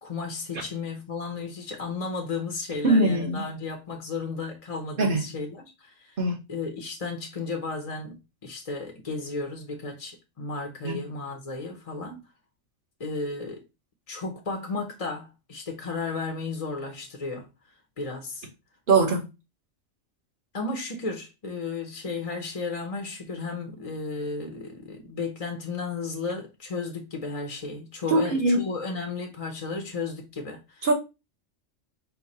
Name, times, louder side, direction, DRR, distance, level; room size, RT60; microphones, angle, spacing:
voice 1, 0.0-6.2 6.5-12.2 13.0-13.6 14.1-17.5 18.0-18.5 20.5-30.9, left 3 dB, 35° left, 0.7 m, -34 dB
voice 2, 2.8-3.4 5.0-5.2 6.2-6.4 10.8-11.0 18.9-19.3 28.1-28.6 30.8-30.9, right 2 dB, 45° right, 1.2 m, -21 dB
4.7 x 2.3 x 4.0 m
omnidirectional pair, 1.3 m